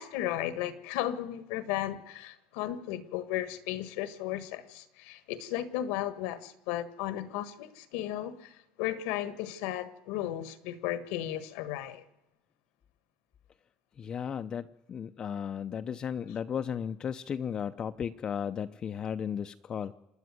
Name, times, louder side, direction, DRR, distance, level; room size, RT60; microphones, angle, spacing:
voice 1, 0.0-12.0, left 12 dB, 85° left, 1.4 m, -35 dB
voice 2, 14.0-19.9, left 8 dB, 35° left, 0.6 m, -35 dB
27.5 x 10.0 x 9.6 m
cardioid pair, 120°, 2 cm